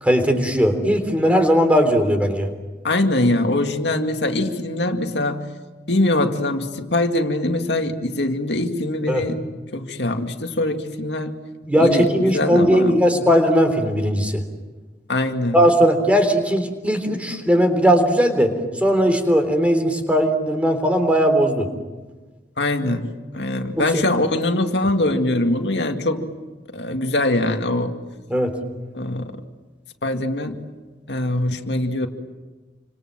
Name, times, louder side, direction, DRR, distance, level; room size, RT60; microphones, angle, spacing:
voice 1, 0.0-2.5 9.1-9.3 11.6-14.4 15.5-21.7 23.8-24.0 28.3-28.5, equal, 10° right, 6 dB, 3.6 m, -18 dB
voice 2, 2.8-5.5 5.9-9.4 9.7-11.4 11.8-13.2 15.1-15.6 22.6-26.3 26.7-27.9 28.9-29.3 30.0-30.6 31.1-32.1, left 1 dB, 80° left, 5 dB, 2.2 m, -22 dB
29.0 x 26.0 x 7.6 m, 1.3 s
head